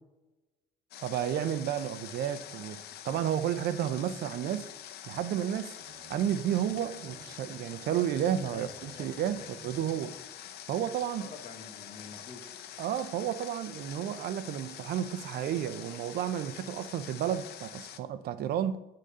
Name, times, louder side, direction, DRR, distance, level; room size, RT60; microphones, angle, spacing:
Water, 0.9-18.0, left 10 dB, 70° left, 0.7 m, -46 dB
voice 1, 1.0-2.8 3.0-4.7 5.1-5.7 6.1-10.1 10.7-11.2 12.8-18.8, right 10 dB, 65° right, 0.6 m, -32 dB
Bowed string instrument, 5.8-10.1, right 5 dB, 50° right, 2.5 m, -55 dB
voice 2, 8.5-9.1 9.4-9.9 11.1-12.6, left 4 dB, 40° left, 1.3 m, -48 dB
8.3 x 3.8 x 6.6 m
cardioid pair, 110°, 17 cm